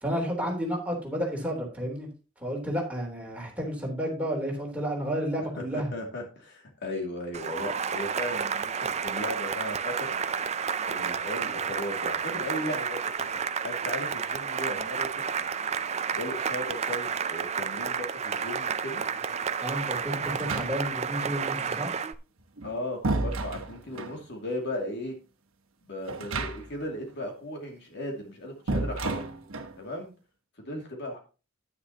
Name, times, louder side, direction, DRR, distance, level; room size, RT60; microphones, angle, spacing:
voice 1, 0.0-2.1 2.4-5.9 19.6-21.9, equal, 5° right, -1 dB, 3.4 m, -31 dB
voice 2, 5.6-10.1 10.9-15.1 15.4-15.5 16.2-19.0 22.6-25.2 25.9-29.2 29.8-30.1 30.6-31.2, left 1 dB, 55° left, 2 dB, 2.5 m, -36 dB
Cheering / Applause, 7.3-22.1, right 6 dB, 30° right, 0.5 m, -31 dB
sound 1, 20.3-21.1 22.4-24.2 26.1-26.9 27.1-27.2 28.7-29.8, right 2 dB, 75° right, 1.2 m, -32 dB
10.0 x 9.9 x 2.9 m, 0.32 s
head